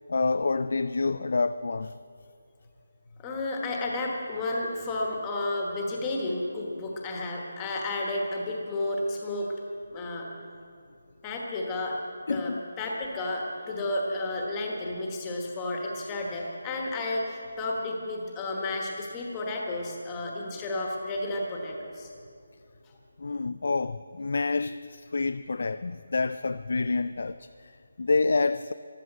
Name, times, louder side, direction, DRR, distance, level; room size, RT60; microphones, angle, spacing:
voice 1, 0.1-1.9 12.3-12.6 23.2-28.7, left 3 dB, 45° left, 0.3 m, -28 dB
voice 2, 3.2-9.5 9.9-10.3 11.2-12.0 12.3-22.1, left 2 dB, 10° left, 1.3 m, -32 dB
14.0 x 12.5 x 7.8 m
hypercardioid pair, 180°, 0 cm